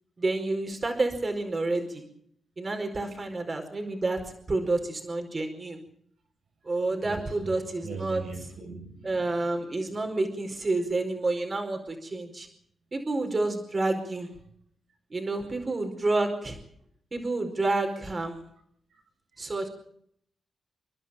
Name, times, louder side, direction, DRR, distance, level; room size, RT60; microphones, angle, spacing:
voice 1, 0.2-2.1 2.6-5.8 6.6-8.2 9.0-12.5 12.9-14.3 15.1-16.6 17.1-18.4 19.4-19.7, right 2 dB, 40° right, 4.8 m, -29 dB
voice 2, 7.0-7.5 7.8-9.7, right 4 dB, 80° right, 6.7 m, -40 dB
29.5 x 11.5 x 8.8 m
cardioid pair, 55°, 0 cm